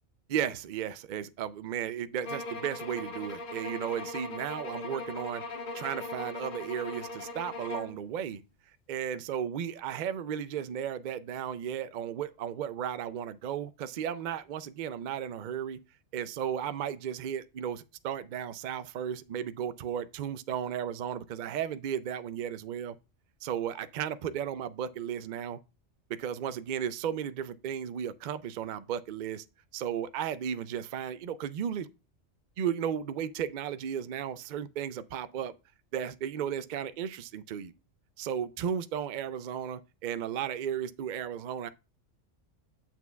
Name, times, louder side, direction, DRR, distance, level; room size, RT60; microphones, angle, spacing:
voice 1, 0.3-5.4 5.7-8.4 8.9-15.8 16.1-23.0 23.4-25.6 26.1-29.4 29.7-31.9 32.6-35.5 35.9-37.7 38.2-41.7, right 9 dB, 65° right, 0.4 m, -34 dB
sound 1, 2.2-8.0, left 2 dB, 50° left, 0.8 m, -39 dB
8.2 x 7.3 x 2.2 m
omnidirectional pair, 1.3 m